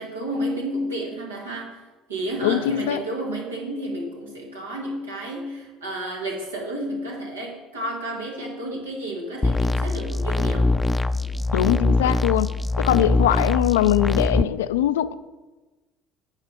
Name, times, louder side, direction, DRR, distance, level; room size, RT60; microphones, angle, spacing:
voice 1, 0.0-1.8 2.1-10.8, right 1 dB, 90° right, 1.7 m, -31 dB
voice 2, 2.4-3.0 11.5-12.5 12.8-15.1, left 12 dB, 80° left, 0.3 m, -21 dB
sound 1, 9.4-14.4, left 2 dB, 15° left, 0.4 m, -22 dB
9.0 x 4.0 x 6.7 m
hypercardioid pair, 65°, 0 cm